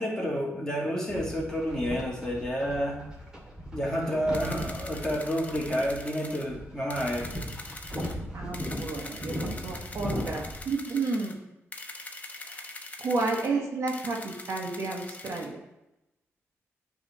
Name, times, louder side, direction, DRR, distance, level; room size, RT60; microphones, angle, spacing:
voice 1, 0.0-3.0 3.7-7.3, equal, 10° left, -3 dB, 2.1 m, -30 dB
sound 1, 1.1-10.7, equal, 10° right, 2.2 m, -38 dB
sound 2, 4.3-6.5 6.9-8.2 8.5-11.4 11.7-13.5 13.9-15.5, left 2 dB, 30° left, 0.9 m, -43 dB
voice 2, 8.3-11.3 12.5-12.6 13.0-15.6, right 3 dB, 75° right, 0 dB, 1.4 m, -31 dB
9.0 x 3.6 x 4.2 m, 0.91 s
cardioid pair, 85°, 5 cm